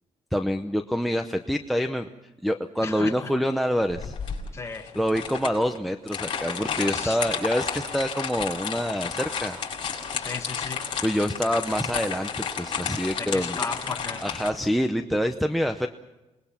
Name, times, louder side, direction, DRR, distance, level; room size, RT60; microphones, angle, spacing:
voice 1, 0.3-2.1 2.4-4.1 5.0-9.6 11.0-13.6 14.2-15.9, equal, ahead, 8 dB, 0.7 m, -26 dB
voice 2, 2.8-3.3 4.5-4.9 6.9-7.2 10.2-10.8 13.2-14.3, left 4 dB, 25° left, 4 dB, 1.9 m, -35 dB
sound 1, 3.9-14.5, left 6 dB, 40° left, 6.2 m, -32 dB
28.5 x 20.5 x 5.9 m, 1.0 s
cardioid pair, 165°, 13 cm